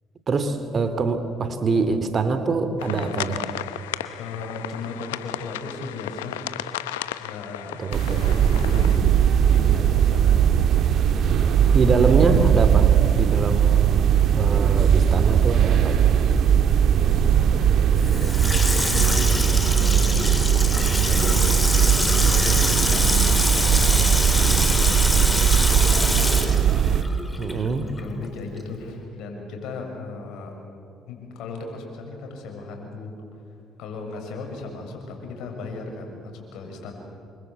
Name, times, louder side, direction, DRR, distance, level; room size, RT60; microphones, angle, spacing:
voice 1, 0.3-3.4 7.8-8.2 11.7-16.1 27.4-27.9, right 4 dB, 45° right, 10 dB, 3.0 m, -24 dB
sound 1, 2.8-9.0, left 13 dB, 90° left, 0.8 m, -34 dB
voice 2, 4.2-6.4 7.2-7.8 8.1-10.4 16.9-18.4 18.7-20.3 20.7-23.7 24.3-26.3 28.0-30.5 31.1-33.1 33.8-36.9, left 3 dB, 70° left, 2 dB, 6.9 m, -37 dB
sound 2, 7.9-27.0, right 8 dB, 60° right, 1.8 m, -19 dB
Water tap faucet / Sink (filling or washing), 18.0-27.7 28.0-28.1, left 2 dB, 15° left, 4.0 m, -25 dB
28.5 x 25.0 x 8.3 m, 2.5 s
hypercardioid pair, 55°, 0 cm